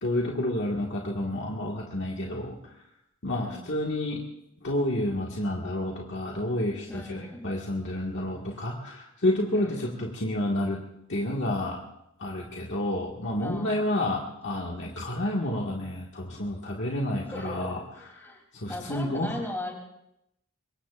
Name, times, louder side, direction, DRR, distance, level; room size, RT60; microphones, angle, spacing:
voice 1, 0.0-2.7 3.2-4.2 4.6-10.8 11.1-11.8 12.2-19.5, left 1 dB, 55° left, -2 dB, 1.8 m, -30 dB
voice 2, 3.3-3.6 6.9-7.5 9.5-10.0 13.4-13.9 17.3-18.4 18.7-19.7, left 1 dB, 10° left, 1 dB, 3.2 m, -39 dB
25.0 x 22.5 x 2.5 m, 0.82 s
head